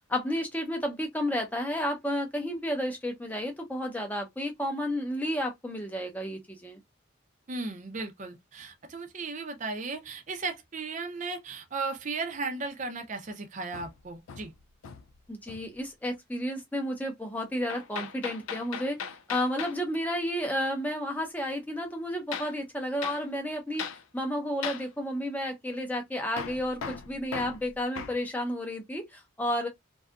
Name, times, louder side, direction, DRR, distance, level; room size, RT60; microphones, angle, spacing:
voice 1, 0.1-6.8 15.3-19.0 19.3-23.8 24.1-29.7, equal, 10° left, 0.6 m, -32 dB
voice 2, 7.5-14.5, right 3 dB, 35° right, 0.5 m, -36 dB
Hammer, 13.7-15.2 15.5-15.8 17.7-19.8 22.3-22.6 23.0-23.2 23.8-24.0 24.6-24.9 26.4-28.2, left 6 dB, 75° left, 0.3 m, -38 dB
2.6 x 2.3 x 2.3 m
head